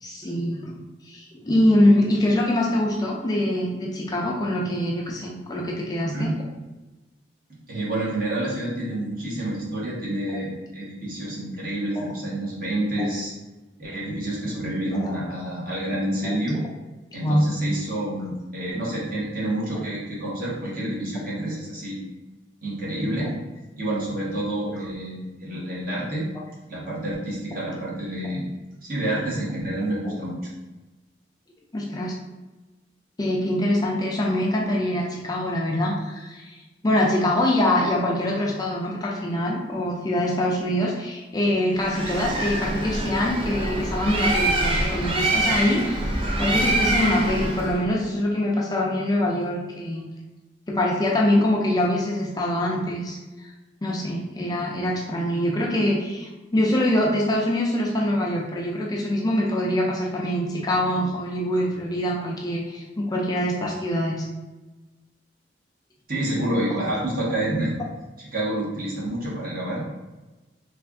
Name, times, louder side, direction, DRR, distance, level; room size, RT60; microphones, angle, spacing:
voice 1, 0.0-0.7 1.0-6.3 12.0-12.1 13.0-13.1 15.0-15.1 16.2-16.3 17.2-17.5 23.2-23.3 30.0-30.1 31.7-32.1 33.2-36.6 36.8-50.0 50.7-53.5 53.8-64.3, left 1 dB, 20° left, -2 dB, 0.4 m, -24 dB
voice 2, 7.7-13.3 13.8-16.6 17.1-22.0 22.6-23.3 23.8-26.3 26.6-28.4 28.8-30.4 66.1-67.7 68.3-69.8, right 1 dB, 50° right, -6 dB, 1.2 m, -28 dB
Bird, 41.8-47.8, right 2 dB, 30° right, 0.5 m, -25 dB
3.4 x 2.4 x 3.5 m, 1.1 s
head